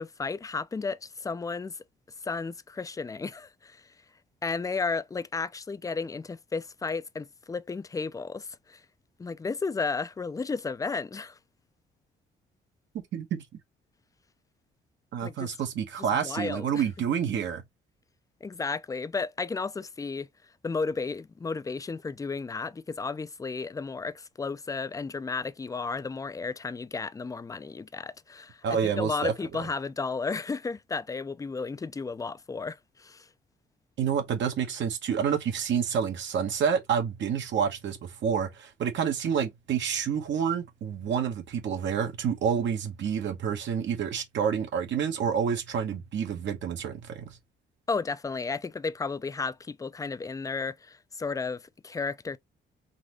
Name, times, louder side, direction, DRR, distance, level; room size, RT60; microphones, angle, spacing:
voice 1, 0.0-1.8 2.2-3.9 4.4-8.8 9.2-11.4 15.2-15.5 16.0-16.8 18.4-20.3 20.6-33.3 47.9-52.4, left 4 dB, 15° left, 0.4 m, -33 dB
voice 2, 12.9-13.4 15.1-17.6 28.6-29.3 34.0-47.3, right 7 dB, 70° right, 1.1 m, -28 dB
4.0 x 2.6 x 3.0 m
cardioid pair, 90°, 20 cm